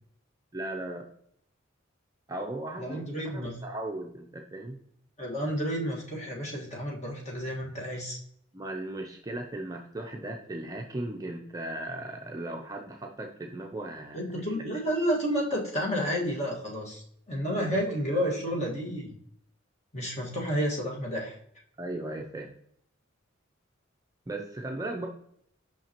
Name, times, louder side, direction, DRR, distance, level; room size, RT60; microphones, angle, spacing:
voice 1, 0.5-1.1 2.3-4.8 8.5-14.7 17.6-17.8 18.1-18.3 21.8-22.5 24.3-25.1, right 1 dB, 15° right, 1 dB, 0.5 m, -37 dB
voice 2, 2.8-3.5 5.2-8.2 14.1-19.1 19.9-21.3, equal, 35° left, -2 dB, 1.6 m, -31 dB
5.8 x 5.7 x 2.9 m, 0.66 s
head